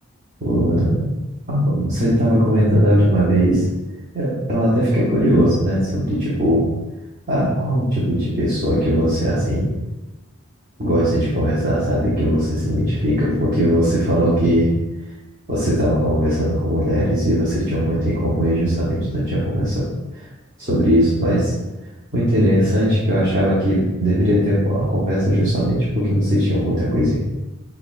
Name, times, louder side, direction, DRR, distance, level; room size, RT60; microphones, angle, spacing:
voice 1, 0.4-1.1 1.5-3.6 4.1-6.6 7.3-9.7 10.8-14.7 15.5-19.8 20.2-20.3 20.6-21.5 22.1-27.2, equal, 40° right, -8 dB, 0.8 m, -19 dB
5.7 x 2.3 x 2.4 m, 1.0 s
head